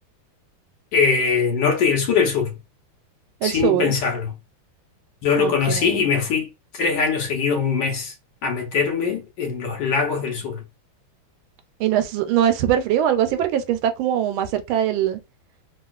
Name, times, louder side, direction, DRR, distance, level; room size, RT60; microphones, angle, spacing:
voice 1, 0.9-2.6 3.4-4.4 5.2-8.1 8.4-10.6, left 5 dB, 70° left, 1.3 m, -22 dB
voice 2, 3.4-3.9 5.4-6.0 11.8-15.2, right 10 dB, 85° right, 1.4 m, -22 dB
3.4 x 2.4 x 2.3 m
omnidirectional pair, 2.2 m